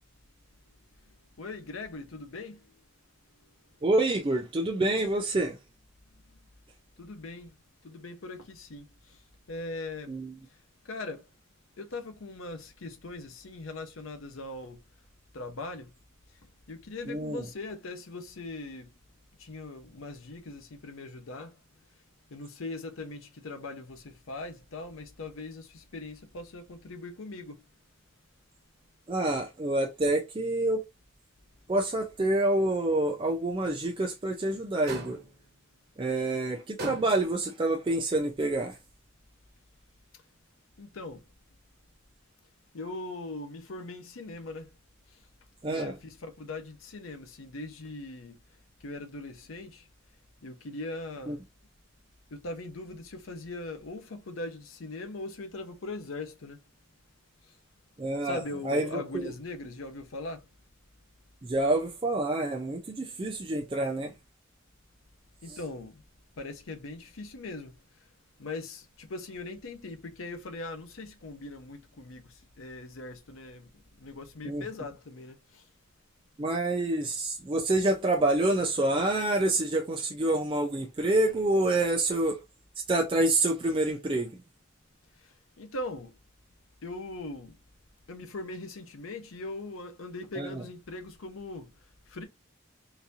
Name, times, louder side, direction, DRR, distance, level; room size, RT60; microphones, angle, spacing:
voice 1, 1.4-2.6 7.0-7.5 7.8-9.2 9.5-10.1 10.8-11.3 11.8-14.8 15.3-15.9 16.7-18.9 19.4-21.6 22.3-27.6 40.8-41.2 42.7-44.7 45.7-48.4 48.8-49.8 50.4-51.4 52.3-56.6 58.2-60.5 65.4-66.0 66.4-67.7 68.4-73.7 74.0-75.6 85.6-86.2 86.8-87.6 88.1-91.7 92.1-92.2, left 2 dB, 90° left, 0.7 m, -40 dB
voice 2, 3.8-5.6 10.1-10.3 17.1-17.5 29.1-30.8 31.7-35.2 36.0-38.8 45.6-45.9 51.3-51.4 58.0-59.3 61.4-64.1 65.5-65.6 74.4-74.6 76.4-82.4 82.9-84.3 90.4-90.6, right 2 dB, 25° right, 0.4 m, -27 dB
sound 1, 34.9-35.4 36.8-37.4, right 1 dB, 50° right, 1.2 m, -38 dB
3.9 x 2.6 x 2.7 m
head